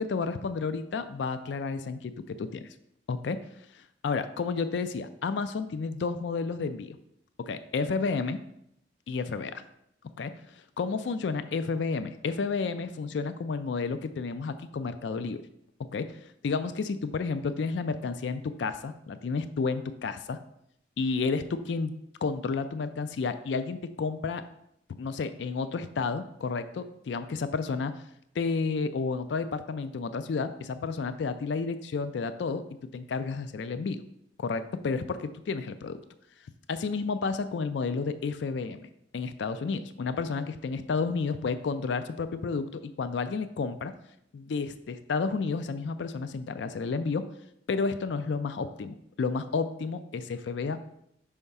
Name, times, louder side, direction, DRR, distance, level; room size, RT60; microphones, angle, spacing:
voice 1, 0.0-2.7 3.1-3.4 3.7-7.0 7.5-8.4 9.1-9.6 10.2-15.4 15.9-16.2 16.4-20.4 21.0-24.4 25.0-28.0 28.4-32.6 32.9-34.0 34.4-36.0 36.7-38.8 39.1-43.9 44.3-47.3 47.7-50.8, left 4 dB, 70° left, 11 dB, 0.4 m, -31 dB
5.5 x 3.5 x 5.4 m, 0.77 s
head